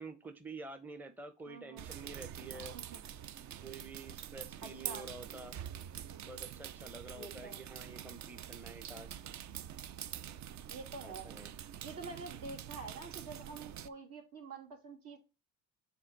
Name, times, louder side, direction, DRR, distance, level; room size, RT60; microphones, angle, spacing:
voice 1, 0.0-2.7 3.5-5.6 6.2-9.2 11.0-11.5, right 3 dB, 5° right, 9 dB, 0.6 m, -48 dB
voice 2, 1.5-1.9 2.7-3.0 4.6-5.1 7.1-7.6 10.7-11.3 11.6-15.2, right 3 dB, 65° right, 1 dB, 2.7 m, -47 dB
sound 1, 1.8-13.9, right 10 dB, 50° right, 0.5 m, -46 dB
6.5 x 3.6 x 4.6 m, 0.28 s
supercardioid pair, 90°, 38 cm